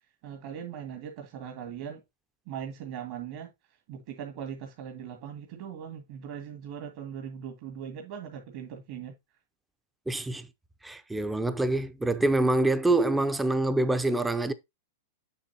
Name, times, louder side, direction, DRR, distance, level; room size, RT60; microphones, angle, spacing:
voice 1, 0.2-2.0 2.5-3.5 3.9-9.2, right 8 dB, 55° right, 2.0 m, -40 dB
voice 2, 10.1-10.4 10.8-14.5, right 2 dB, 5° right, 0.6 m, -25 dB
6.9 x 6.6 x 2.8 m
hypercardioid pair, 135°, 0 cm